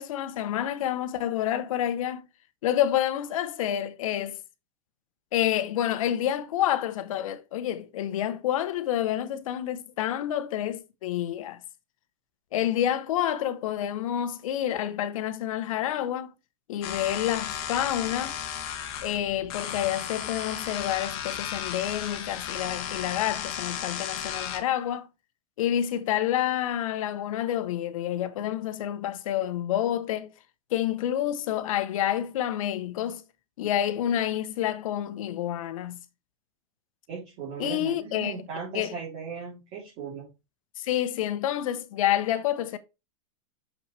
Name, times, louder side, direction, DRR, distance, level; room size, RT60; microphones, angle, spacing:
voice 1, 0.0-2.3 2.6-4.4 5.3-11.6 12.5-16.3 16.7-18.4 19.0-25.1 25.6-30.3 30.7-33.2 33.6-36.0 37.6-38.3 38.7-38.9 40.8-42.8, left 11 dB, 65° left, 1.0 m, -28 dB
sound 1, 16.8-24.6, left 9 dB, 40° left, 1.5 m, -34 dB
voice 2, 37.1-40.3, right 5 dB, 35° right, 3.2 m, -37 dB
6.4 x 5.7 x 3.3 m
supercardioid pair, 165°, 18 cm